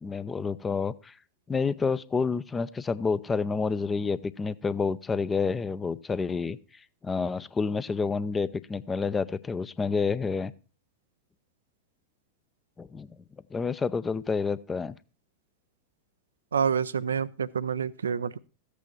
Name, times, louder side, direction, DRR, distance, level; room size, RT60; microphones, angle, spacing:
voice 1, 0.0-1.1 1.5-6.6 7.0-10.5 12.8-13.1 13.5-14.9, left 5 dB, 15° left, 16 dB, 0.6 m, -29 dB
voice 2, 16.5-18.4, right 7 dB, 70° right, 16 dB, 0.4 m, -28 dB
14.5 x 8.4 x 4.4 m, 0.35 s
figure-of-eight pair, 90°, 0 cm